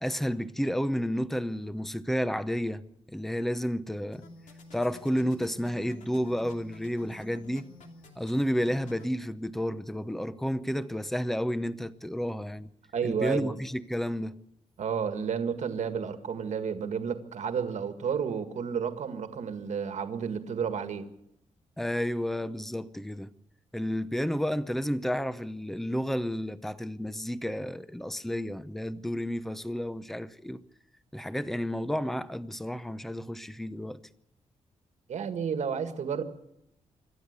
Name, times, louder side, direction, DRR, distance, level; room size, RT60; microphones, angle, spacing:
voice 1, 0.0-4.2 4.7-7.7 8.2-12.7 13.0-14.3 21.8-23.3 23.7-30.6 31.1-34.0, equal, ahead, 0.7 m, -31 dB
sound 1, 4.1-9.1, left 2 dB, 85° left, 2.9 m, -51 dB
voice 2, 12.9-13.5 14.8-21.0 35.1-36.2, right 6 dB, 70° right, 1.8 m, -31 dB
26.5 x 12.5 x 8.2 m
wide cardioid pair, 135°, 12 cm